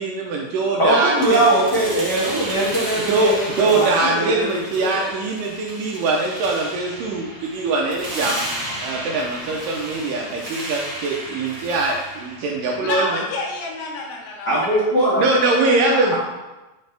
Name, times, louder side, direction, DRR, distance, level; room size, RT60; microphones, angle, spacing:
voice 1, 0.0-1.4 3.1-8.5 8.8-13.1 15.2-16.2, right 3 dB, 80° right, -1 dB, 2.0 m, -22 dB
voice 2, 0.8-3.9 4.1-4.9 14.5-15.2 15.9-16.2, right 1 dB, 60° left, -10 dB, 1.0 m, -20 dB
sound 1, 1.2-13.1, right 1 dB, 45° right, 0.4 m, -33 dB
voice 3, 12.4-14.9 15.4-15.7, left 2 dB, 85° left, 0 dB, 3.1 m, -29 dB
8.9 x 4.0 x 3.3 m, 1.1 s
omnidirectional pair, 4.4 m